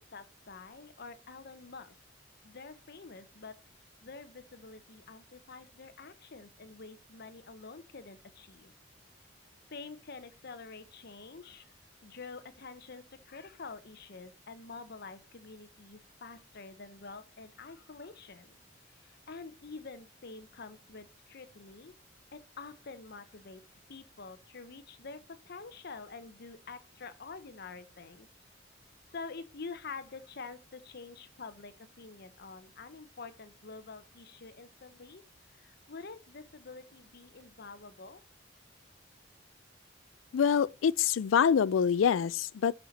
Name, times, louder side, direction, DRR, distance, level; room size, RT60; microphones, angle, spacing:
voice 1, 0.0-1.9 2.4-3.6 4.0-8.8 9.7-11.8 12.0-18.6 18.9-21.9 22.3-23.6 23.9-28.3 28.8-35.2 35.5-38.2, left 4 dB, 55° left, 0.8 m, -47 dB
voice 2, 40.3-42.7, left 7 dB, 90° left, 0.4 m, -25 dB
12.5 x 4.5 x 4.1 m
head